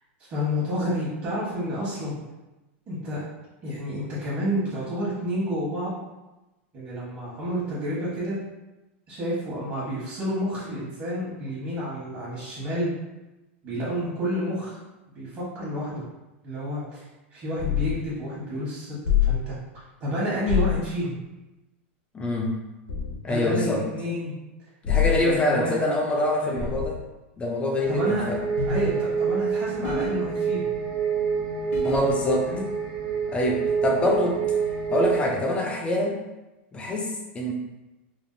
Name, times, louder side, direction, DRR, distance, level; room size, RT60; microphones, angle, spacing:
voice 1, 0.3-2.2 2.9-3.2 3.6-5.9 6.7-8.4 9.1-12.9 13.6-14.8 15.1-16.0 16.4-21.2 23.3-24.4 25.2-25.8 26.4-26.7 27.9-28.2 28.7-30.7 32.4-32.6, equal, 35° right, -8 dB, 1.2 m, -30 dB
sound 1, 17.6-17.9 19.0-19.4 20.5-20.8 22.9-23.2 24.8-25.2 26.6-27.0 28.6-28.9 29.8-30.1 31.7-32.1, left 10 dB, 70° left, 0.7 m, -25 dB
voice 2, 22.1-22.6 23.2-23.8 24.8-27.0 27.4-28.4 31.8-32.5 33.3-34.4 34.9-36.2 36.7-37.5, left 1 dB, 15° left, 0 dB, 0.4 m, -25 dB
sound 2, 27.8-35.3, right 6 dB, 60° right, 0.6 m, -27 dB
3.5 x 2.4 x 2.6 m, 1.0 s
supercardioid pair, 145°, 7 cm